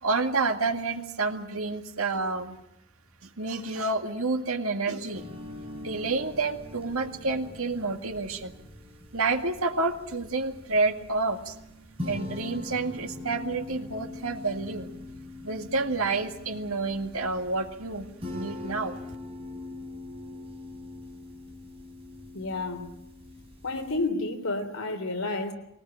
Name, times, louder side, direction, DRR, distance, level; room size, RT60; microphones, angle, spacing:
voice 1, 0.0-2.6 3.2-5.3 5.8-8.5 9.1-11.5 12.1-14.9 15.4-18.1 18.3-19.0, right 3 dB, 80° right, 5 dB, 2.1 m, -29 dB
sound 1, 5.1-24.1, left 2 dB, 25° right, 4.2 m, -42 dB
voice 2, 22.3-22.9 23.6-25.5, left 2 dB, 80° left, 5 dB, 3.4 m, -30 dB
21.5 x 19.5 x 8.8 m, 0.83 s
head